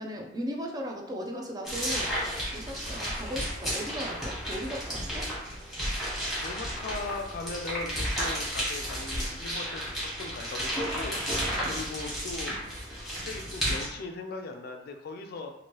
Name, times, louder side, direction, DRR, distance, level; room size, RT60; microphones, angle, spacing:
voice 1, 0.0-5.3, equal, 20° right, 1 dB, 0.4 m, -37 dB
sound 1, 1.6-13.9, equal, ahead, 1.2 m, -33 dB
voice 2, 6.0-12.5 13.0-15.5, left 3 dB, 50° left, 5 dB, 0.3 m, -39 dB
2.9 x 2.6 x 3.0 m, 0.88 s
head